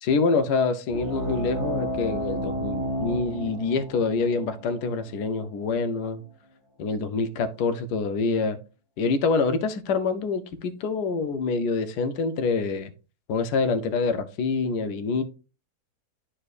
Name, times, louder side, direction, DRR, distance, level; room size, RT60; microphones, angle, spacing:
voice 1, 0.0-6.2 6.8-8.6 9.0-12.9 13.3-15.2, left 4 dB, 80° left, 1.3 m, -26 dB
sound 1, 0.9-6.0, right 1 dB, 20° right, 1.4 m, -32 dB
11.0 x 4.4 x 2.4 m
omnidirectional pair, 1.7 m